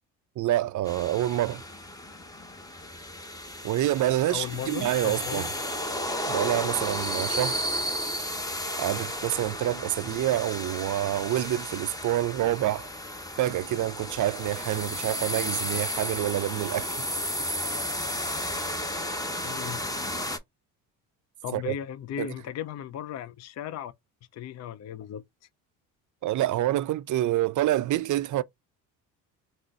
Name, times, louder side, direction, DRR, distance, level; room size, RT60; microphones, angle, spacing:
voice 1, 0.4-1.6 3.6-5.5 6.3-7.6 8.8-12.9 13.4-17.0 21.5-21.7 22.2-22.3 26.2-28.4, right 14 dB, 45° right, 0.4 m, -27 dB
sound 1, 0.9-20.4, equal, 10° left, 0.8 m, -33 dB
voice 2, 4.3-5.5 19.4-19.8 21.4-23.9 24.3-25.2, left 10 dB, 40° left, 0.5 m, -36 dB
3.8 x 2.0 x 3.6 m
supercardioid pair, 65°, 44 cm